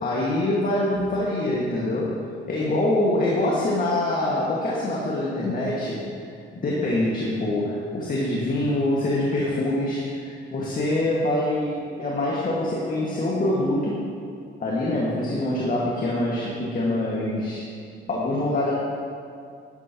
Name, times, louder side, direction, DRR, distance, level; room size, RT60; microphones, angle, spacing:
voice 1, 0.0-2.2 2.5-6.1 6.5-14.0 14.6-17.6 18.1-18.7, left 1 dB, 45° left, -5 dB, 1.8 m, -25 dB
11.5 x 10.5 x 3.0 m, 2.3 s
cardioid pair, 90°, 20 cm